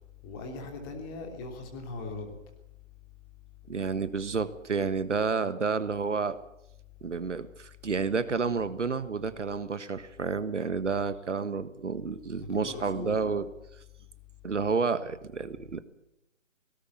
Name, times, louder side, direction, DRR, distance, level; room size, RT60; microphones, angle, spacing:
voice 1, 0.2-2.4 12.3-13.2, left 3 dB, 20° left, 3 dB, 3.3 m, -39 dB
voice 2, 3.7-6.4 7.0-13.5 14.4-15.8, right 5 dB, 65° right, 13 dB, 1.6 m, -30 dB
18.5 x 17.0 x 8.4 m, 0.85 s
figure-of-eight pair, 155°, 39 cm